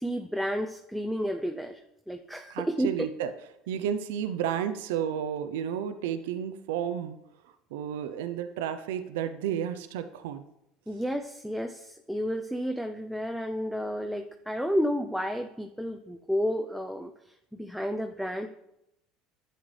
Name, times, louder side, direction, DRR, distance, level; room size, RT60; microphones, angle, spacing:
voice 1, 0.0-1.8 2.1-3.1 10.9-17.1 17.6-18.5, equal, ahead, 4 dB, 0.6 m, -31 dB
voice 2, 2.5-3.3 3.7-7.2 7.4-10.4, right 9 dB, 80° right, 10 dB, 0.5 m, -32 dB
10.5 x 7.9 x 3.3 m, 0.83 s
hypercardioid pair, 80°, 0 cm